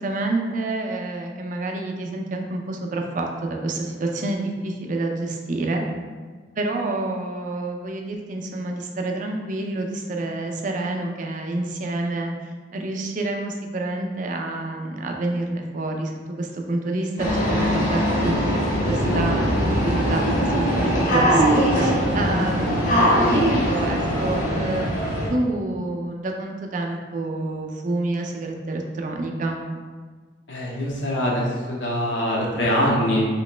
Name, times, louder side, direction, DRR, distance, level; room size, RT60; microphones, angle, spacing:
voice 1, 0.0-5.8 6.6-29.6, right 2 dB, 45° right, 2 dB, 0.4 m, -28 dB
sound 1, 17.2-25.3, equal, 45° left, 0.8 m, -21 dB
voice 2, 30.5-33.3, equal, 80° left, -4 dB, 0.8 m, -23 dB
3.0 x 2.9 x 3.2 m, 1.5 s
head